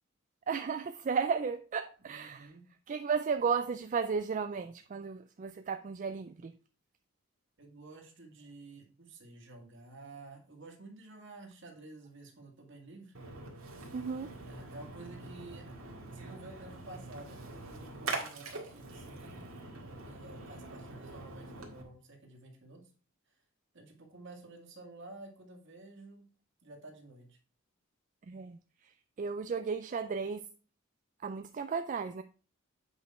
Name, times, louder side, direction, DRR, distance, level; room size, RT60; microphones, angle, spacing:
voice 1, 0.5-2.5 2.9-6.5 13.9-14.3 28.3-28.6 29.2-30.4 31.2-32.2, right 5 dB, 35° right, 0.3 m, -34 dB
voice 2, 2.0-2.6 7.6-13.2 13.8-13.9 14.4-15.7 16.1-19.4 20.1-22.8 23.7-26.2 26.6-27.4, right 2 dB, 60° right, 2.0 m, -51 dB
Splash splatter, 13.1-21.8, right 3 dB, 80° right, 2.0 m, -44 dB
8.2 x 5.0 x 4.2 m
head